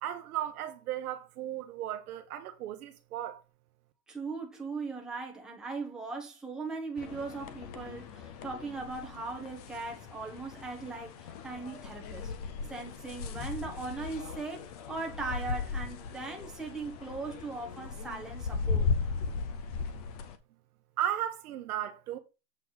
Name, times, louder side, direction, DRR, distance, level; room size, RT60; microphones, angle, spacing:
voice 1, 0.0-3.4 21.0-22.2, right 11 dB, 65° right, 1.3 m, -35 dB
voice 2, 4.1-12.3 12.7-18.9, right 3 dB, ahead, 1.0 m, -39 dB
sound 1, 7.0-20.4, left 5 dB, 25° left, 0.4 m, -37 dB
7.8 x 4.4 x 4.0 m
supercardioid pair, 150°, 49 cm